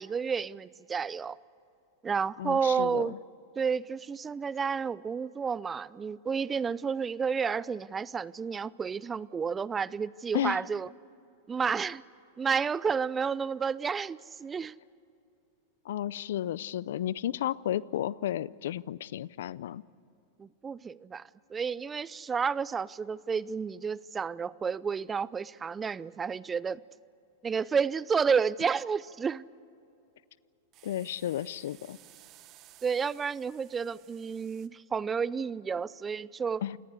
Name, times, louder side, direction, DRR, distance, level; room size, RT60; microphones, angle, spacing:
voice 1, 0.0-1.4 2.0-3.1 3.6-10.9 11.5-12.0 12.4-14.8 20.4-21.2 21.5-26.8 27.4-29.4 32.8-36.6, right 6 dB, 20° right, 21 dB, 0.5 m, -31 dB
voice 2, 2.4-3.2 10.3-10.6 15.8-19.8 30.8-32.0 36.6-36.8, left 11 dB, 75° left, 22 dB, 0.5 m, -33 dB
sound 1, 30.7-34.7, right 14 dB, 40° right, 1.3 m, -57 dB
28.0 x 19.0 x 8.2 m, 2.7 s
hypercardioid pair, 110°, 0 cm